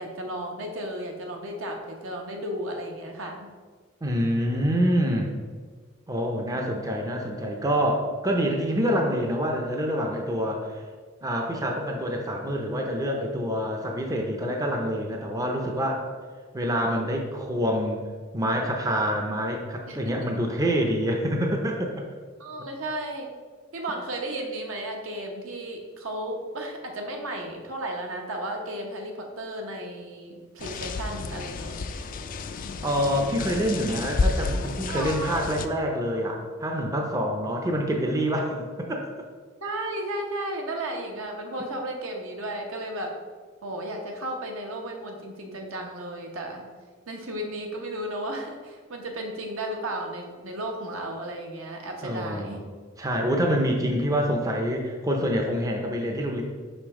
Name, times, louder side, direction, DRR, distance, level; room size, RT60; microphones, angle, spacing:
voice 1, 0.0-3.5 19.9-20.4 22.4-23.3 23.7-31.8 34.9-35.4 39.6-43.2 43.6-46.6 47.1-52.6, right 1 dB, 75° right, 2 dB, 0.9 m, -34 dB
voice 2, 4.0-5.3 6.1-10.8 11.2-16.0 16.5-18.0 18.3-21.9 32.8-39.0 52.0-52.6 53.0-56.4, equal, 15° right, 1 dB, 0.5 m, -26 dB
sound 1, 30.6-35.7, left 3 dB, 40° left, 0.3 m, -31 dB
5.2 x 5.2 x 3.6 m, 1.5 s
head